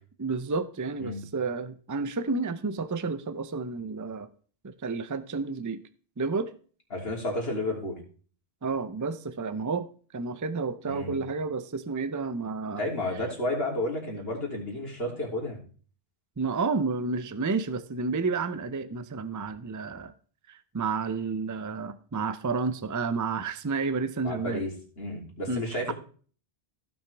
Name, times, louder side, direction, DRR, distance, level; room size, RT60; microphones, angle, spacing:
voice 1, 0.2-4.3 4.6-5.8 6.2-6.5 8.6-9.9 10.1-12.8 16.4-20.1 20.5-24.6 25.5-25.9, right 4 dB, 20° right, 12 dB, 0.5 m, -31 dB
voice 2, 6.9-8.0 10.9-11.2 12.8-15.6 24.2-25.9, left 1 dB, 70° left, -1 dB, 3.5 m, -32 dB
16.0 x 6.1 x 3.4 m, 0.41 s
omnidirectional pair, 1.1 m